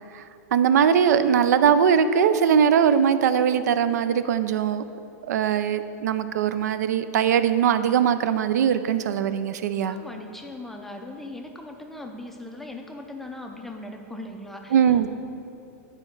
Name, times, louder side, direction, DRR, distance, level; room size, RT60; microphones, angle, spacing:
voice 1, 0.5-4.8 5.3-10.0 14.7-15.1, right 8 dB, 80° right, 12 dB, 0.4 m, -21 dB
voice 2, 9.9-15.1, left 1 dB, 5° left, 3 dB, 0.4 m, -39 dB
9.6 x 4.4 x 4.6 m, 2.8 s
supercardioid pair, 160°, 9 cm